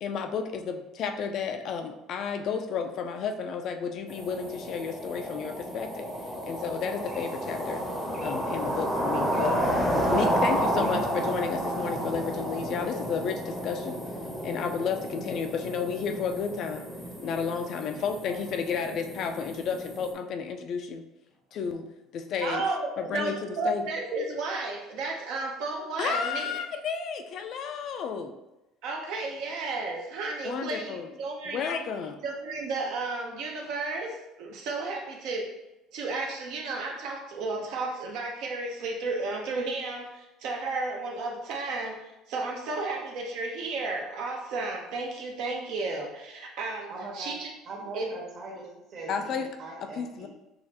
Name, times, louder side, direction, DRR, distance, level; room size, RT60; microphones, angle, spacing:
voice 1, 0.0-6.1 6.5-7.8 8.2-9.6 10.1-14.0 14.4-16.9 17.2-21.0 21.5-21.9 22.1-22.6 23.0-23.4 23.6-23.9 26.0-28.3 30.4-31.1 31.4-32.2 49.1-49.5 49.8-50.3, left 6 dB, 40° left, 6 dB, 0.3 m, -32 dB
sound 1, 4.1-20.1, equal, ahead, 0.7 m, -31 dB
voice 2, 17.8-18.9 46.9-47.3 47.6-50.3, right 2 dB, 40° right, -3 dB, 1.3 m, -42 dB
voice 3, 22.4-26.5 28.8-31.6 32.2-35.5 35.9-47.5 47.9-48.1, right 3 dB, 55° right, 0 dB, 0.6 m, -33 dB
6.3 x 2.4 x 2.8 m, 0.94 s
cardioid pair, 170°, 0 cm